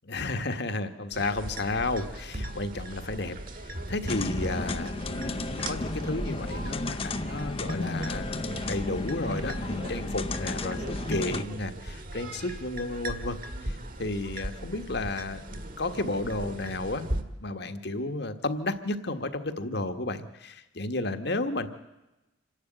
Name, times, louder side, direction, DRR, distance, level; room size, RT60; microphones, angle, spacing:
voice 1, 0.1-17.1 17.4-21.7, left 2 dB, 60° left, 9 dB, 1.5 m, -32 dB
sound 1, 1.1-17.2, right 1 dB, 45° right, 1.7 m, -38 dB
sound 2, 4.1-11.5, left 2 dB, 30° left, 0.7 m, -33 dB
27.0 x 11.5 x 9.1 m, 1.0 s
head